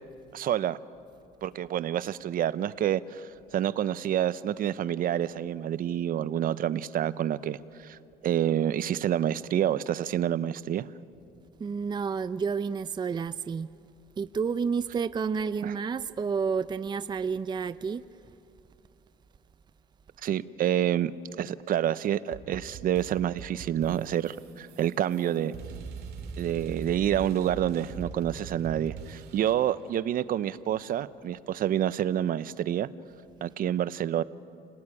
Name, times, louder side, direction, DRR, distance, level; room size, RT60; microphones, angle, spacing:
voice 1, 0.3-0.8 1.4-10.9 15.6-15.7 20.2-21.1 21.4-25.5 26.4-32.9 33.4-34.2, right 11 dB, 55° right, 0.7 m, -28 dB
voice 2, 11.6-13.7 14.2-18.0, right 5 dB, 25° right, 0.5 m, -30 dB
sound 1, 22.3-29.7, right 6 dB, 75° right, 2.2 m, -42 dB
28.5 x 18.0 x 9.7 m
cardioid pair, 110°, 17 cm